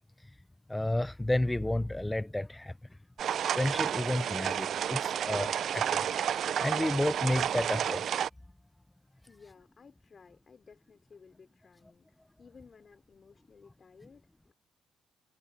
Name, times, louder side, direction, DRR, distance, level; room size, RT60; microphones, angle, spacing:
voice 1, 0.7-2.7 3.5-6.1 6.6-8.0, left 1 dB, 10° left, 0.6 m, -31 dB
sound 1, 3.2-8.3, right 9 dB, 65° right, 0.4 m, -31 dB
voice 2, 9.3-14.5, left 5 dB, 40° left, 4.2 m, -57 dB
cardioid pair, 90°, 0 cm